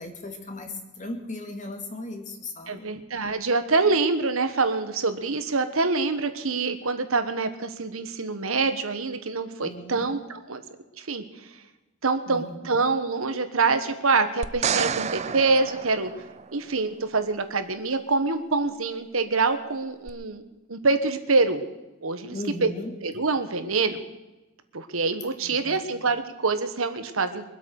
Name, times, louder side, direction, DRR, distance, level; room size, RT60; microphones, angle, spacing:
voice 1, 0.0-2.9 9.6-10.1 12.3-12.6 22.3-22.9 25.4-25.8, left 1 dB, 35° left, 4 dB, 2.3 m, -37 dB
voice 2, 2.7-10.6 11.0-11.2 12.0-16.1 16.5-20.4 20.7-21.6 22.0-22.4 22.6-22.7 23.0-24.0 24.7-27.4, right 3 dB, 90° right, 9 dB, 1.4 m, -25 dB
sound 1, 14.4-16.7 20.1-20.2, right 7 dB, 35° right, 0.5 m, -29 dB
23.0 x 8.3 x 6.5 m, 1.1 s
head